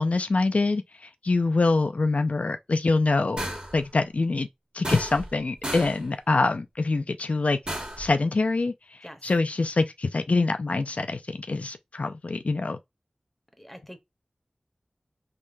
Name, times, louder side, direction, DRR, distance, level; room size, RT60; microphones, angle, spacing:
voice 1, 0.0-3.5 3.7-4.5 4.7-7.6 8.0-12.8, left 3 dB, 70° left, 0.3 m, -25 dB
sound 1, 3.4-3.8 4.8-5.4 5.6-6.0 7.7-8.1, right 1 dB, 45° right, 1.7 m, -33 dB
voice 2, 13.6-14.0, equal, 5° left, 0.9 m, -44 dB
3.7 x 3.1 x 2.6 m
wide cardioid pair, 40°, 2 cm